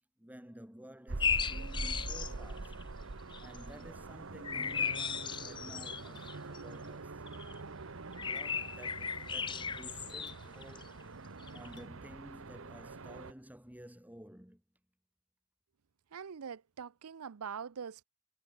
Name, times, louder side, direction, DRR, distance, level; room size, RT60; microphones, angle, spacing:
voice 1, 0.0-2.8 3.4-7.2 8.2-11.2 11.5-14.6, equal, 5° right, 1.9 m, -53 dB
sound 1, 1.1-13.3, right 3 dB, 65° right, 1.1 m, -44 dB
sound 2, 1.2-2.8 3.3-3.7 4.4-6.6 7.3-7.6 8.1-11.0 11.4-11.8, left 6 dB, 20° left, 0.5 m, -36 dB
Chink clink, 6.2-6.3 8.3-8.5 10.3-10.5 11.8-11.9, left 10 dB, 55° left, 1.7 m, -58 dB
voice 2, 16.1-18.0, right 7 dB, 85° right, 0.6 m, -43 dB
head